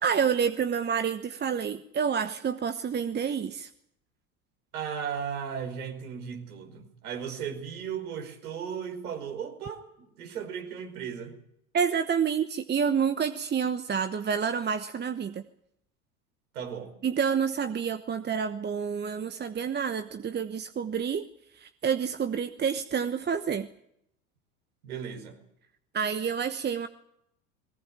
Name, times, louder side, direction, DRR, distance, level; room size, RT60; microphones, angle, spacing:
voice 1, 0.0-3.7 11.7-15.4 17.0-21.3 21.5-23.7 25.9-26.9, right 7 dB, 25° right, 10 dB, 1.1 m, -28 dB
voice 2, 4.7-11.4 16.5-16.9 24.8-25.4, right 7 dB, 75° right, 5 dB, 5.4 m, -36 dB
21.0 x 18.0 x 8.9 m, 0.75 s
hypercardioid pair, 80°, 44 cm